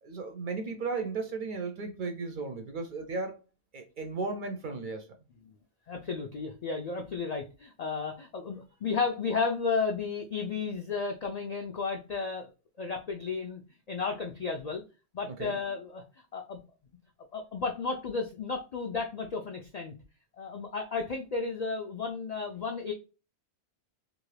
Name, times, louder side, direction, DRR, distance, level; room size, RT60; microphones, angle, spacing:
voice 1, 0.0-3.4 3.7-5.1 15.3-15.6, right 4 dB, 60° right, 0.6 m, -35 dB
voice 2, 5.9-12.5 12.8-14.8 15.1-16.0 16.3-16.6 17.3-19.9 20.4-22.9, left 4 dB, 65° left, 0.4 m, -33 dB
2.6 x 2.5 x 3.1 m
omnidirectional pair, 1.2 m